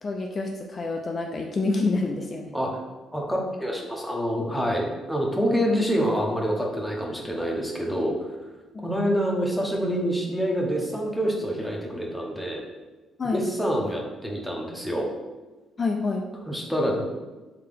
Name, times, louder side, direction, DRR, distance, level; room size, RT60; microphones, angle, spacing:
voice 1, 0.0-2.5 8.7-8.9 13.2-13.4 15.8-16.3, left 3 dB, 35° left, 2 dB, 0.3 m, -27 dB
voice 2, 3.1-8.3 8.8-12.6 13.2-15.1 16.5-17.0, equal, 5° left, -1 dB, 0.8 m, -26 dB
3.5 x 2.8 x 3.4 m, 1.2 s
cardioid pair, 90°, 0 cm